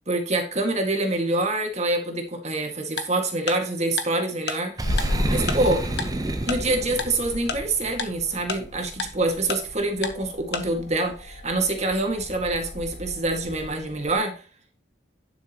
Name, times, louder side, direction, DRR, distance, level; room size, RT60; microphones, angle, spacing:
voice 1, 0.1-4.9 5.3-5.8 6.5-14.4, right 2 dB, 40° right, 3 dB, 1.9 m, -26 dB
Tick-tock, 3.0-3.1 3.5-3.6 4.0-4.1 4.5-4.6 5.0-5.1 5.5-5.6 6.0-6.1 6.5-6.6 7.0-7.1 7.5-7.6 8.0-8.1 8.5-8.6 9.0-9.1 9.5-9.6 10.0-10.1 10.5-10.6, left 5 dB, 60° left, 1.2 m, -28 dB
sound 1, 4.8-14.2, left 1 dB, 80° left, 3.0 m, -34 dB
Boom, 4.8-7.5, right 1 dB, 20° right, 0.8 m, -29 dB
11.0 x 6.3 x 3.0 m, 0.38 s
head